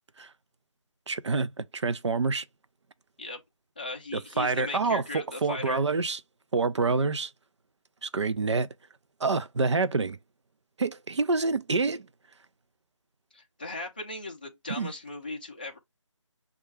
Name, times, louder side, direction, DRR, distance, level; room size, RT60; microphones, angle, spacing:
voice 1, 1.1-2.4 4.1-6.2 6.5-7.3 8.0-8.7 9.2-10.2 10.8-12.1 14.8-14.9, right 4 dB, 65° right, 0.5 m, -27 dB
voice 2, 3.8-5.8 13.3-15.8, left 2 dB, 15° left, 0.5 m, -38 dB
6.6 x 2.4 x 3.2 m
figure-of-eight pair, 170°, 16 cm